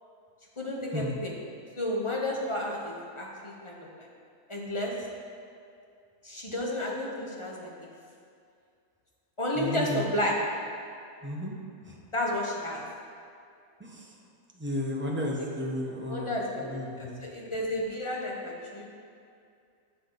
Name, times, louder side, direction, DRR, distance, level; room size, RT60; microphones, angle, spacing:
voice 1, 0.6-1.3 1.8-4.1 4.5-4.9 6.2-7.7 9.4-10.4 12.1-12.8 16.1-16.7 17.0-18.8, left 1 dB, 20° left, -3 dB, 1.1 m, -32 dB
voice 2, 9.6-10.0 11.2-11.6 11.9-12.0 13.8-14.1 14.6-17.2, left 1 dB, 10° right, -2 dB, 0.9 m, -33 dB
11.0 x 6.9 x 4.0 m, 2.4 s
omnidirectional pair, 1.8 m